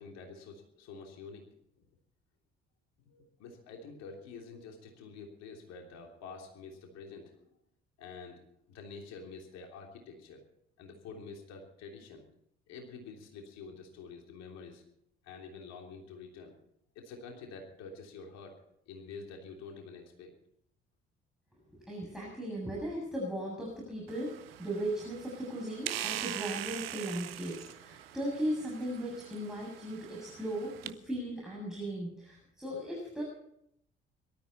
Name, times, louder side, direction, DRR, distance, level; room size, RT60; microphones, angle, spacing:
voice 1, 0.0-1.5 1.8-1.9 3.0-7.6 8.0-8.4 8.7-10.4 10.8-12.2 12.7-14.8 15.2-16.5 16.9-18.6 18.9-20.3, left 4 dB, 60° left, 2 dB, 3.2 m, -48 dB
voice 2, 21.9-33.2, right 1 dB, ahead, -3 dB, 7.3 m, -37 dB
sound 1, 24.1-30.9, right 13 dB, 75° right, 0.7 m, -42 dB
22.5 x 13.0 x 4.3 m, 0.73 s
figure-of-eight pair, 50°, 30 cm